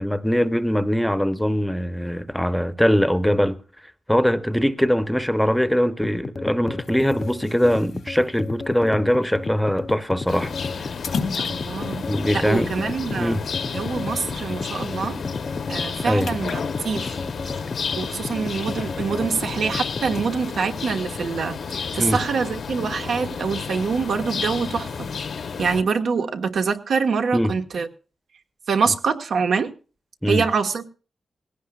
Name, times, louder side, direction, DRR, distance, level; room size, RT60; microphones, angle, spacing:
voice 1, 0.0-3.6 4.1-10.5 10.8-10.9 12.1-12.7 13.2-13.4 16.0-16.3 22.0-22.2 27.3-27.5 30.2-30.5, equal, 5° left, 0.8 m, -21 dB
sound 1, 6.0-20.3, left 3 dB, 40° left, 0.7 m, -33 dB
sound 2, 6.8-14.8 15.2-15.3 15.6-18.6 19.0-20.6, left 5 dB, 90° left, 1.8 m, -39 dB
sound 3, 10.3-25.8, left 6 dB, 70° left, 1.0 m, -31 dB
voice 2, 11.4-12.0 12.3-13.4 13.7-15.2 15.7-17.2 17.9-25.1 25.6-27.9 28.7-29.7 30.3-30.8, right 5 dB, 80° right, 1.5 m, -25 dB
19.0 x 17.0 x 2.4 m
cardioid pair, 90°, 0 cm